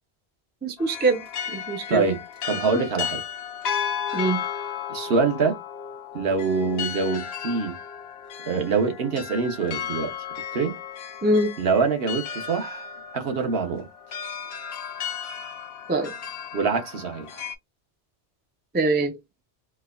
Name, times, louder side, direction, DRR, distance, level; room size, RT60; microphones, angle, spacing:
voice 1, 0.6-2.0 4.1-4.5 11.2-11.5 15.9-16.1 18.7-19.2, right 2 dB, 15° right, 0.3 m, -23 dB
sound 1, 0.8-17.6, left 8 dB, 75° left, 0.8 m, -34 dB
voice 2, 2.4-3.2 4.9-5.6 6.1-7.8 8.4-10.1 10.5-10.8 11.6-12.9 13.1-13.9 16.5-17.4, right 4 dB, 65° right, 1.0 m, -24 dB
4.5 x 2.1 x 2.3 m
omnidirectional pair, 1.1 m